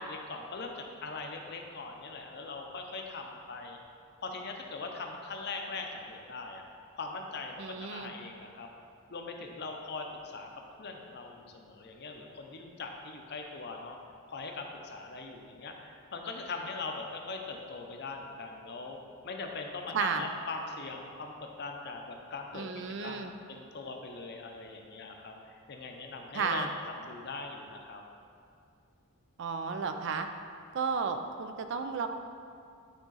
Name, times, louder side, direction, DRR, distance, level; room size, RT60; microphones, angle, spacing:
voice 1, 0.1-3.8 4.2-6.6 7.0-8.7 9.1-14.0 14.3-19.0 19.2-26.7 27.0-28.0, left 3 dB, 50° left, 3 dB, 0.6 m, -41 dB
voice 2, 7.6-8.1 19.9-20.3 22.5-23.3 26.3-26.7 29.4-30.3 30.7-32.1, right 5 dB, 55° right, 7 dB, 0.4 m, -33 dB
9.0 x 3.7 x 4.0 m, 2.4 s
head